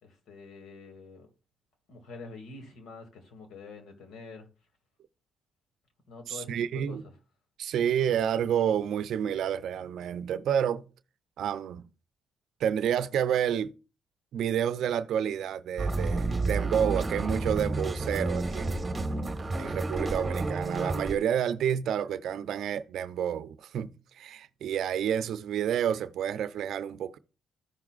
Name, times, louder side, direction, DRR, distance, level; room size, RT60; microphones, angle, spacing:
voice 1, 0.0-1.3 1.9-4.5 6.1-7.0, left 4 dB, 70° left, 2.5 m, -46 dB
voice 2, 6.3-7.1 7.6-10.9 11.4-11.8 12.6-13.7 14.3-18.8 19.6-27.2, right 9 dB, 75° right, 0.6 m, -29 dB
sound 1, 15.8-21.2, right 2 dB, 20° right, 1.5 m, -30 dB
15.0 x 5.9 x 2.5 m
cardioid pair, 90°, 0 cm